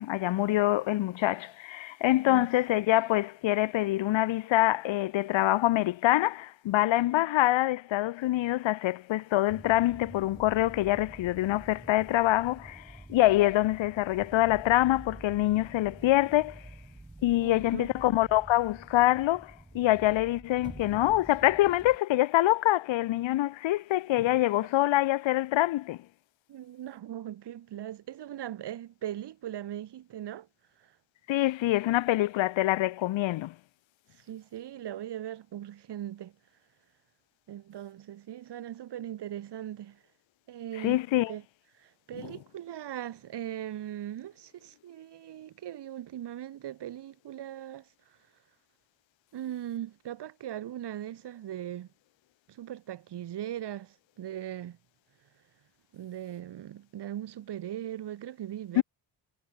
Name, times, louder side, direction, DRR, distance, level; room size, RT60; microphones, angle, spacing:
voice 1, 0.0-12.8 13.1-16.6 17.2-26.0 31.3-33.5 40.8-41.3 42.2-42.3 58.8-58.9, left 16 dB, 85° left, 0.8 m, -25 dB
sound 1, 9.5-22.0, right 2 dB, 10° right, 1.2 m, -48 dB
voice 2, 17.4-17.9 26.5-30.5 30.8-30.9 34.2-36.3 37.5-40.0 40.5-41.0 41.3-41.4 41.8-47.9 49.3-51.9 52.5-54.8 55.9-58.8, right 11 dB, 60° right, 1.1 m, -39 dB
cardioid pair, 80°, 45 cm